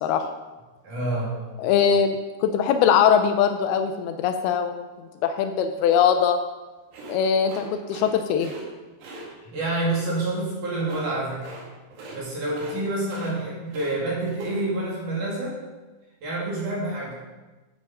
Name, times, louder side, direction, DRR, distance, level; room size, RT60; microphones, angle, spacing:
voice 1, 0.8-1.4 9.4-11.5 12.1-15.6 16.2-17.1, right 2 dB, 50° right, -5 dB, 4.3 m, -28 dB
voice 2, 1.6-4.8 5.2-6.4 7.1-8.5, left 7 dB, 80° left, 7 dB, 2.5 m, -21 dB
sound 1, 6.9-8.1 8.4-8.6 9.0-9.3 10.8-11.1 11.4-11.6 11.9-12.2 12.5-12.8 13.0-13.9 14.2-14.6, right 2 dB, 85° right, 4.3 m, -41 dB
11.5 x 7.8 x 5.6 m, 1.2 s
omnidirectional pair, 4.7 m